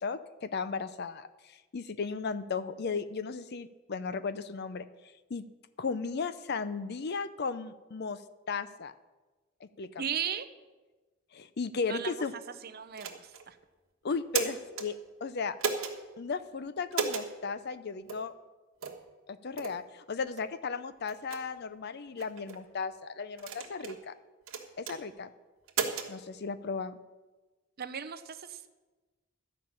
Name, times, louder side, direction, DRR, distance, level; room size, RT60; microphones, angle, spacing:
voice 1, 0.0-4.9 5.3-5.4 5.8-8.2 8.5-8.9 9.6-10.0 11.3-12.3 14.0-15.6 16.2-18.3 19.3-24.1 24.8-25.3 26.1-26.9, left 4 dB, 50° left, 14 dB, 0.5 m, -35 dB
voice 2, 10.0-10.5 11.9-12.1 12.6-13.6 27.8-28.7, right 8 dB, 50° right, 11 dB, 0.7 m, -36 dB
sound 1, 13.0-13.4 14.1-14.9 15.6-15.9 16.9-17.3 18.1-18.2 18.8-19.0 19.6-19.8 20.4-20.5 21.1-21.4 22.2-22.6 23.4-24.0 24.5-25.0 25.7-26.1, right 5 dB, 85° right, 1.4 m, -34 dB
12.0 x 5.9 x 8.7 m, 1.2 s
head